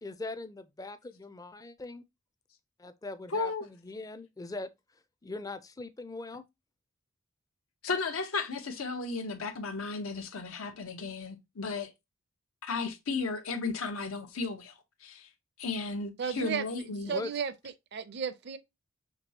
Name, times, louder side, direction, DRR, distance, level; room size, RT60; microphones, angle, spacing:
voice 1, 0.0-2.0 2.8-4.7 5.2-6.4 17.1-17.3, left 2 dB, 15° left, 0.4 m, -41 dB
voice 2, 3.3-3.6 7.8-11.9 12.6-14.7 15.0-15.3 15.6-17.1, left 4 dB, 85° left, 0.9 m, -34 dB
voice 3, 16.2-16.6 17.1-17.5 17.9-18.6, right 6 dB, 55° right, 0.5 m, -33 dB
6.0 x 3.1 x 2.7 m
head